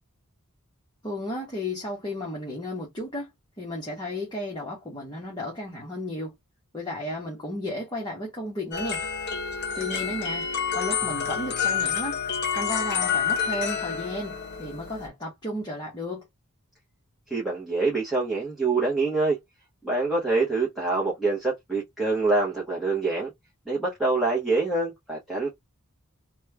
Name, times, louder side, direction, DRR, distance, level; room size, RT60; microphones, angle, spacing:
voice 1, 1.0-3.3 3.6-6.3 6.7-9.0 9.7-10.5 10.7-12.2 12.5-16.3, left 1 dB, 20° left, 1.0 m, -33 dB
sound 1, 8.7-15.1, left 7 dB, 45° left, 0.7 m, -28 dB
voice 2, 17.3-19.4 19.8-23.3 23.7-25.5, right 3 dB, ahead, 0.9 m, -25 dB
3.1 x 2.3 x 3.3 m
head